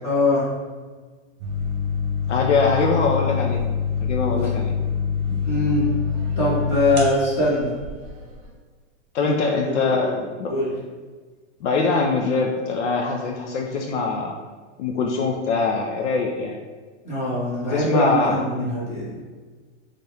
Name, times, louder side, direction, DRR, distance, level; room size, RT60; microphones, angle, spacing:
voice 1, 0.0-0.5 5.4-5.9 6.4-7.8 9.2-10.2 10.5-10.7 17.0-19.2, left 1 dB, 20° left, -9 dB, 1.5 m, -22 dB
sound 1, 1.4-8.4, left 6 dB, 45° right, 0.9 m, -25 dB
voice 2, 2.3-3.6 4.0-4.7 9.1-10.5 11.6-14.4 14.8-16.6 17.7-18.4, left 4 dB, 70° left, 1 dB, 0.6 m, -23 dB
4.1 x 2.5 x 3.3 m, 1.4 s
supercardioid pair, 160°, 36 cm